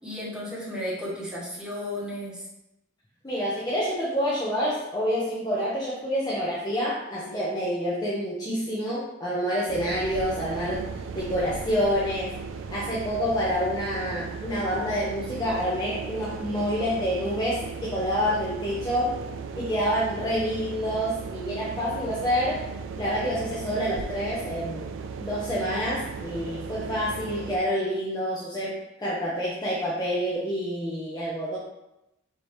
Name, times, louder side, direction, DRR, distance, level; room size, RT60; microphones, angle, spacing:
voice 1, 0.0-2.5, left 1 dB, 5° right, -7 dB, 1.2 m, -34 dB
voice 2, 3.2-10.8 11.1-12.3 12.7-19.1 19.6-22.6 23.0-24.9 25.2-31.6, equal, 20° left, -7 dB, 0.6 m, -28 dB
sound 1, 9.7-27.6, right 5 dB, 70° right, 0.3 m, -37 dB
4.7 x 2.8 x 3.1 m, 0.89 s
head